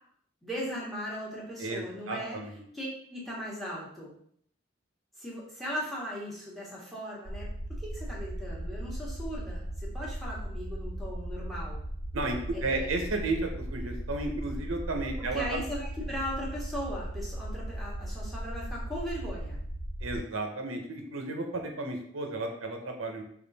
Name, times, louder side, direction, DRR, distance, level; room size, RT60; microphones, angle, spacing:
voice 1, 0.4-2.4 2.7-4.1 5.2-11.8 12.5-12.9 15.2-19.6, equal, ahead, -5 dB, 1.2 m, -38 dB
voice 2, 1.6-2.6 12.1-15.6 20.0-23.2, right 2 dB, 85° right, 3 dB, 0.8 m, -33 dB
sound 1, 7.2-20.2, right 1 dB, 60° left, 1.0 m, -38 dB
5.2 x 2.5 x 4.0 m, 0.66 s
head